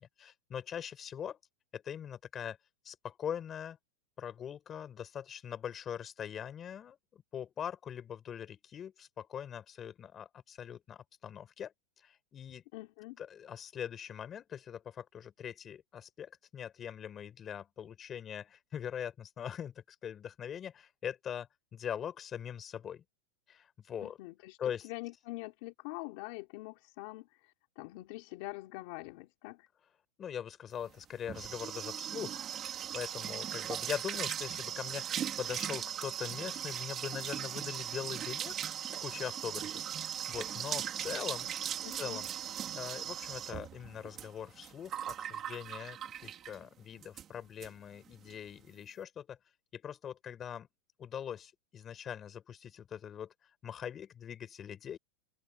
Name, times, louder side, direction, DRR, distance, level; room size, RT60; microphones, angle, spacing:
voice 1, 0.0-1.4 1.7-2.6 2.8-3.8 4.2-12.7 13.2-23.0 23.5-24.2 24.6-24.9 30.2-32.5 32.7-38.6 38.9-42.3 42.7-49.4 49.7-50.7 51.0-53.3 53.6-55.0, left 9 dB, 20° left, 5.4 m, -42 dB
voice 2, 12.7-13.2 24.0-29.7 41.8-42.2, left 21 dB, 45° left, 3.2 m, -45 dB
sound 1, 30.9-46.6 47.0-47.3 47.6-47.7 48.0-48.4, right 10 dB, 20° right, 4.5 m, -39 dB
open air
supercardioid pair, 170°, 0 cm